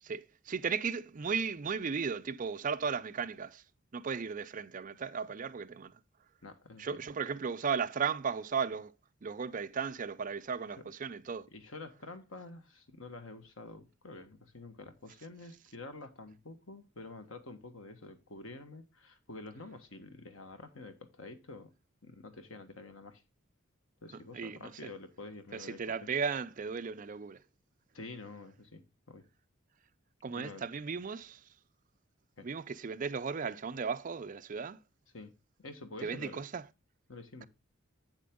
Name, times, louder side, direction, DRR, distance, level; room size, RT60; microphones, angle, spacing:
voice 1, 0.0-3.6 3.9-6.0 6.8-8.9 9.2-11.5 24.3-24.7 25.5-27.4 30.2-31.5 32.4-34.8 36.0-36.6, right 6 dB, 40° right, 0.4 m, -36 dB
voice 2, 6.4-7.0 11.5-21.7 22.0-23.2 24.0-25.8 27.9-29.3 30.3-30.6 32.4-32.5 35.1-36.4 37.1-37.5, left 3 dB, 75° left, 1.4 m, -48 dB
8.5 x 7.4 x 3.7 m
head